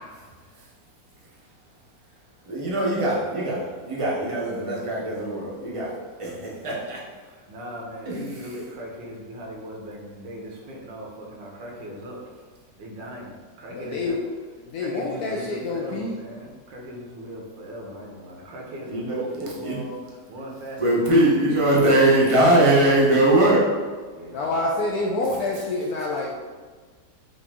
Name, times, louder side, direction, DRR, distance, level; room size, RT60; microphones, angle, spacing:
voice 1, 1.1-1.5 2.1-2.2 6.2-6.3 7.2-12.4 12.8-14.2 14.8-22.1 24.1-24.7, right 1 dB, 75° right, -1 dB, 1.6 m, -38 dB
voice 2, 2.5-7.0 8.1-8.2 18.9-19.8 20.8-23.6, right 1 dB, 35° right, -5 dB, 0.5 m, -21 dB
voice 3, 13.7-14.4 14.6-16.2 24.3-26.4, left 2 dB, 75° left, -1 dB, 0.9 m, -27 dB
5.7 x 2.5 x 3.5 m, 1.5 s
omnidirectional pair, 2.0 m